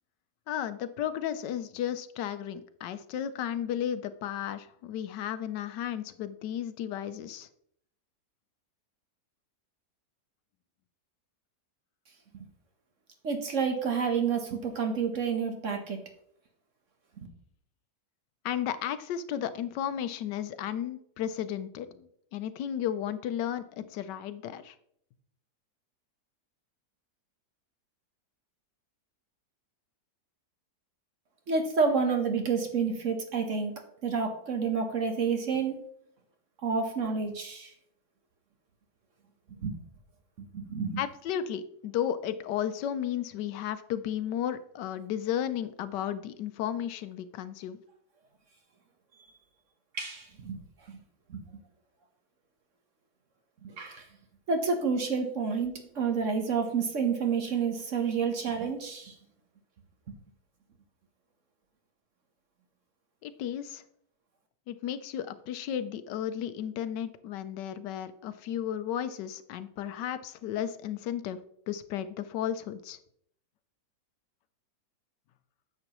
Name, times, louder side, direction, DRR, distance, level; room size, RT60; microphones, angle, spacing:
voice 1, 0.5-7.5 18.4-24.8 41.0-47.8 63.2-63.8 64.7-71.4 71.7-73.0, left 10 dB, 85° left, 12 dB, 1.3 m, -34 dB
voice 2, 13.2-16.0 31.5-33.7 34.0-35.8 36.6-37.7 39.5-39.8 40.4-41.0 49.9-50.6 50.9-51.0 51.3-51.4 53.6-54.0 54.5-59.1, right 5 dB, 50° right, 4 dB, 1.3 m, -29 dB
9.7 x 7.2 x 3.0 m, 0.69 s
omnidirectional pair, 1.8 m